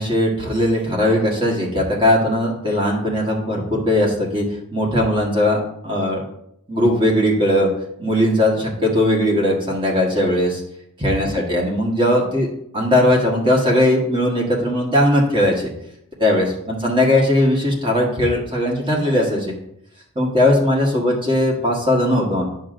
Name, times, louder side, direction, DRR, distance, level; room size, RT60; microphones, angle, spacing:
voice 1, 0.0-4.4 4.7-6.2 6.7-7.7 8.0-10.6 11.0-12.5 12.7-15.7 16.2-19.5 20.1-22.5, left 1 dB, 25° right, -2 dB, 1.3 m, -18 dB
9.5 x 6.2 x 2.5 m, 0.73 s
head